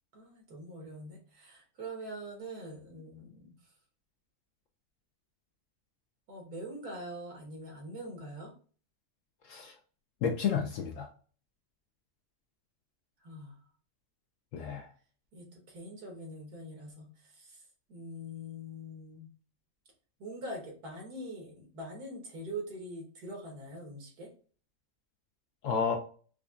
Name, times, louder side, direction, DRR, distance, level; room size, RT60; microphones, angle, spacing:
voice 1, 0.1-3.6 6.3-8.5 13.2-13.6 15.3-17.6 17.9-19.3 20.2-24.3, right 1 dB, 80° right, 1 dB, 1.8 m, -43 dB
voice 2, 10.2-11.1 14.5-14.9 25.6-26.0, left 6 dB, 70° left, 3 dB, 0.8 m, -31 dB
4.9 x 2.2 x 2.4 m, 0.41 s
omnidirectional pair, 1.6 m